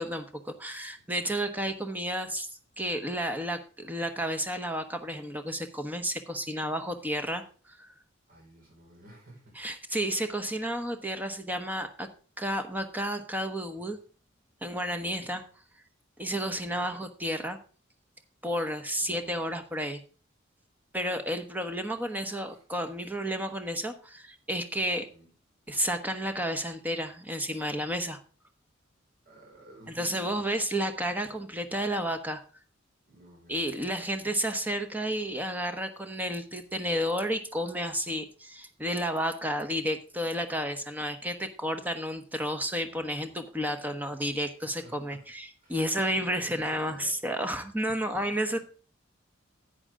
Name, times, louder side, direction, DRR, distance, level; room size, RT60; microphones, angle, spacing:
voice 1, 0.0-7.9 9.6-12.1 12.4-14.0 14.6-15.4 16.2-17.6 18.4-20.0 20.9-25.1 25.7-28.2 29.9-32.4 33.5-48.6, equal, 10° right, 7 dB, 1.1 m, -31 dB
voice 2, 8.3-9.6 14.8-15.3 16.4-16.8 18.9-19.4 22.4-22.6 25.1-25.3 29.2-30.5 33.1-34.0 42.8-43.4 44.1-44.3 44.6-45.2 45.6-46.1 46.3-47.2 48.3-48.6, right 1 dB, 50° right, 0 dB, 5.2 m, -54 dB
10.5 x 8.7 x 3.7 m, 0.37 s
head